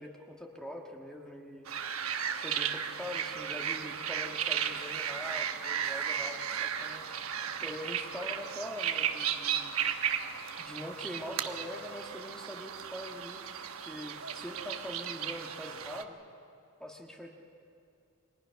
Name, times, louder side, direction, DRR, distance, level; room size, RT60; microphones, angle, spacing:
voice 1, 0.0-1.6 2.3-7.2 7.6-9.7 10.6-13.4 13.8-16.2 16.8-17.3, left 1 dB, 5° left, 1 dB, 1.5 m, -43 dB
sound 1, 1.7-16.0, right 8 dB, 80° right, 1.1 m, -35 dB
29.5 x 23.5 x 5.8 m, 2.5 s
head